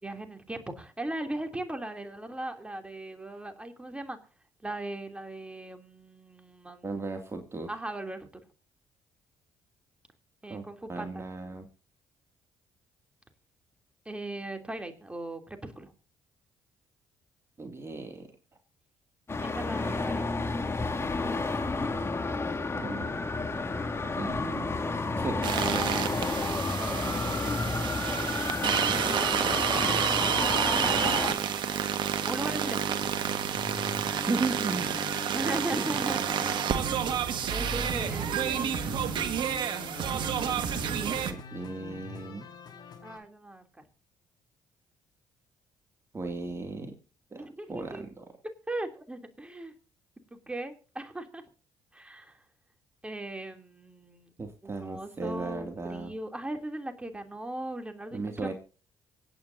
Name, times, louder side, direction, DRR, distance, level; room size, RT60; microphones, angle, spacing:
voice 1, 0.0-4.2 4.6-7.0 7.7-8.3 10.4-11.3 14.0-15.9 19.4-20.4 26.8-27.6 30.2-31.2 32.2-32.8 35.3-36.4 37.5-39.1 43.0-43.6 47.4-48.0 48.7-49.7 50.3-51.4 51.9-52.4 53.0-54.3 54.6-58.5, right 1 dB, 10° right, 6 dB, 3.0 m, -38 dB
voice 2, 6.8-7.7 10.5-10.6 10.9-11.7 17.6-18.3 22.8-23.1 24.1-24.7 25.2-25.5 34.2-35.0 35.7-35.9 36.2-36.5 41.2-42.4 46.1-46.9 47.3-48.3 54.4-56.1 58.1-58.5, right 3 dB, 30° right, 5 dB, 2.5 m, -36 dB
Traffic noise roadway noise, 19.3-31.3, left 3 dB, 30° left, 2.7 m, -31 dB
sound 1, 25.4-41.3, right 8 dB, 60° right, 1.7 m, -29 dB
sound 2, 32.2-43.2, left 6 dB, 50° left, 4.2 m, -43 dB
25.0 x 9.1 x 2.7 m, 0.36 s
hypercardioid pair, 50°, 9 cm